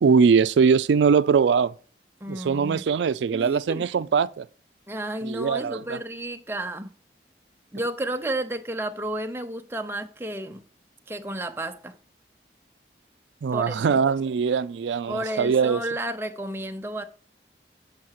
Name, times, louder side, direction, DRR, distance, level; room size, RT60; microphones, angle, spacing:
voice 1, 0.0-1.7 2.3-4.5 5.2-6.0 13.4-15.8, right 6 dB, 85° right, 0.4 m, -21 dB
voice 2, 2.2-2.8 3.3-3.8 4.9-6.9 7.7-10.6 11.1-12.0 13.5-13.8 15.1-17.0, right 1 dB, 15° right, 0.6 m, -32 dB
7.6 x 5.8 x 5.7 m
head